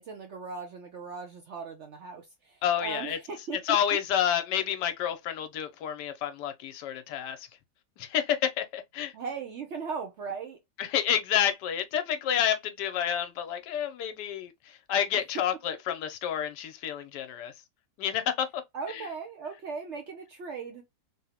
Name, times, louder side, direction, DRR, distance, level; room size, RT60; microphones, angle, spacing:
voice 1, 0.0-3.8 9.1-10.6 18.7-20.8, right 5 dB, 70° right, 0.6 m, -38 dB
voice 2, 2.6-3.2 3.6-7.5 8.0-9.1 10.8-17.5 18.0-18.6 18.9-19.1, left 9 dB, 80° left, 1.2 m, -29 dB
3.5 x 2.0 x 2.8 m
omnidirectional pair, 1.8 m